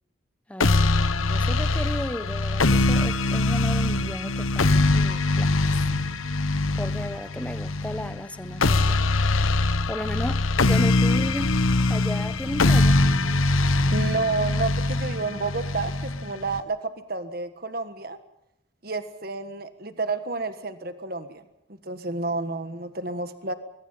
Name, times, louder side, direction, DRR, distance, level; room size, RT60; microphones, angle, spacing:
voice 1, 0.5-5.6 6.7-9.1 9.6-11.6 11.9-13.0, equal, 5° left, 0.9 m, -34 dB
sound 1, 0.6-16.6, left 2 dB, 85° left, 1.2 m, -22 dB
voice 2, 13.9-18.2 18.8-21.4 21.8-23.5, right 3 dB, 45° right, 1.5 m, -30 dB
24.0 x 22.5 x 5.6 m
head